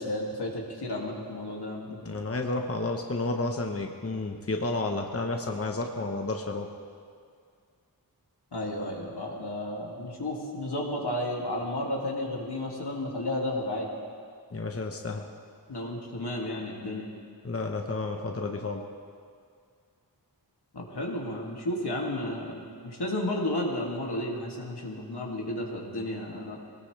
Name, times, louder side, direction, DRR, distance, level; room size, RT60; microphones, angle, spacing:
voice 1, 0.0-2.0 8.5-13.9 15.7-17.1 20.7-26.6, left 1 dB, 85° left, -2 dB, 2.5 m, -32 dB
voice 2, 2.0-6.7 14.5-15.2 17.4-18.8, left 2 dB, 35° left, 3 dB, 1.1 m, -31 dB
22.5 x 19.0 x 3.3 m, 2.2 s
wide cardioid pair, 65°, 39 cm